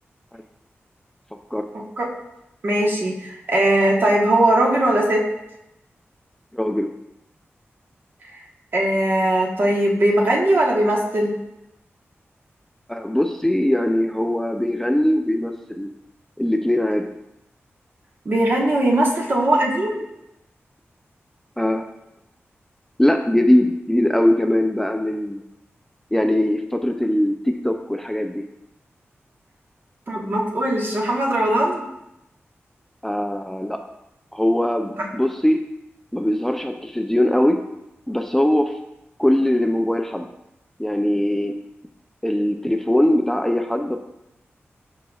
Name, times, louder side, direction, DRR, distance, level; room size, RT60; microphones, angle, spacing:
voice 1, 2.6-5.2 8.7-11.3 18.2-20.0 30.1-31.9, right 1 dB, 50° right, -1 dB, 1.3 m, -19 dB
voice 2, 6.5-6.9 12.9-15.9 16.4-17.1 21.6-21.8 23.0-25.4 26.1-28.4 33.0-33.8 34.3-35.6 36.1-37.6 38.1-38.7 39.2-40.3 40.8-41.6 42.2-44.0, left 1 dB, 5° left, 5 dB, 0.4 m, -21 dB
11.0 x 4.1 x 2.4 m, 0.88 s
wide cardioid pair, 90°, 5 cm